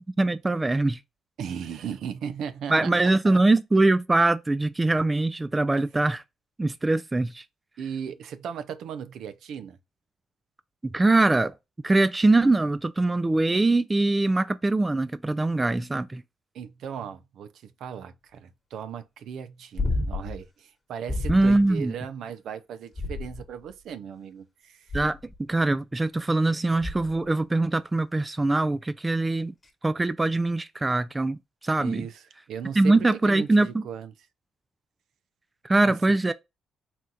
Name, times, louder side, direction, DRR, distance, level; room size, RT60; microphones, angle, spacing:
voice 1, 0.2-1.0 2.7-6.2 6.6-7.4 10.8-11.5 11.8-16.2 21.3-21.9 24.9-29.5 29.8-32.1 32.8-33.8 35.6-36.3, right 2 dB, 20° right, 0.3 m, -23 dB
voice 2, 1.4-3.4 7.8-9.8 16.5-25.0 31.8-34.1 35.8-36.2, right 8 dB, 75° right, 0.5 m, -37 dB
sound 1, 19.8-20.4 21.1-21.6 22.9-23.7 24.9-25.4 26.8-27.2 29.6-29.7, left 2 dB, 20° left, 1.3 m, -30 dB
4.3 x 2.4 x 3.7 m
cardioid pair, 90°, 0 cm